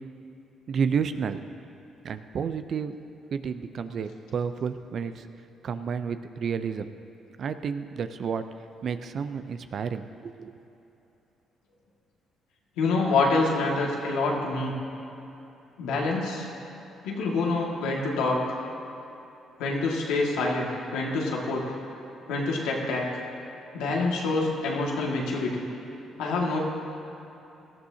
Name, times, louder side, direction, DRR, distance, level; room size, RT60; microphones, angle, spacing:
voice 1, 0.7-1.4 2.0-3.0 3.3-5.3 5.6-6.9 7.4-8.4 8.8-10.6, right 6 dB, 60° right, 10 dB, 0.6 m, -31 dB
voice 2, 12.8-14.7 15.8-16.5 17.0-18.6 19.6-21.7 22.3-23.0 23.7-25.7 26.2-26.6, left 3 dB, 90° left, -2 dB, 2.0 m, -26 dB
18.0 x 13.0 x 2.8 m, 3.0 s
supercardioid pair, 70°, 0 cm